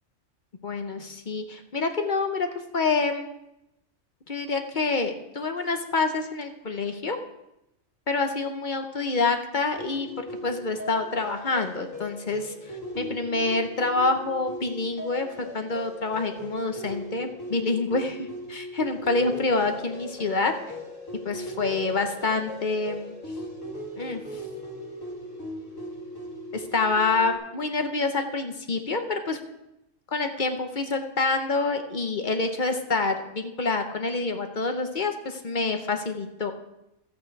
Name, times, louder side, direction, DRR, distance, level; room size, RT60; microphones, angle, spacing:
voice 1, 0.6-2.5 2.7-3.3 4.3-7.2 8.1-10.1 10.4-12.5 13.0-15.3 15.5-20.5 21.2-23.1 24.0-24.2 26.5-29.4 30.1-36.5, left 3 dB, 40° left, 6 dB, 0.9 m, -27 dB
sound 1, 9.8-27.4, equal, 70° left, 2.8 m, -39 dB
13.0 x 8.4 x 4.6 m, 0.88 s
omnidirectional pair, 1.4 m